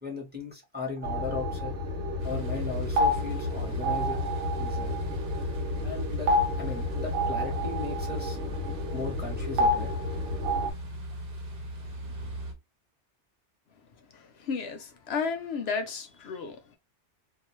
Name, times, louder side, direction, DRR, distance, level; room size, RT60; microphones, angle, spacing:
voice 1, 0.0-1.8 2.2-4.3 4.6-4.9 5.8-8.4 8.9-10.0, left 3 dB, 10° right, 0.8 m, -37 dB
sound 1, 1.0-10.7, left 1 dB, 85° right, 1.1 m, -30 dB
sound 2, 2.2-12.5, equal, 55° right, 1.0 m, -37 dB
voice 2, 14.1-16.8, left 5 dB, 70° left, 0.8 m, -33 dB
2.4 x 2.3 x 2.9 m
omnidirectional pair, 1.2 m